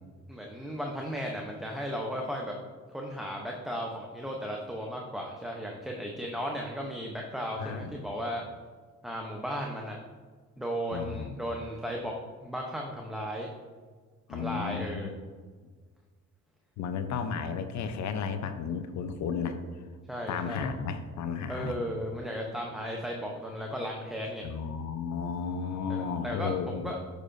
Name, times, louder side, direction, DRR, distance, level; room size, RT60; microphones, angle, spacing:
voice 1, 0.3-2.5 2.9-8.4 9.0-10.0 10.6-12.1 12.4-13.5 14.3-15.1 20.1-20.7 21.5-24.5 25.9-27.0, equal, ahead, -1 dB, 0.6 m, -35 dB
voice 2, 7.6-8.1 10.9-11.3 14.3-15.1 16.8-19.6 20.3-21.8 24.4-26.9, left 6 dB, 65° left, 8 dB, 0.6 m, -33 dB
6.7 x 6.1 x 2.5 m, 1.5 s
cardioid pair, 90°, 30 cm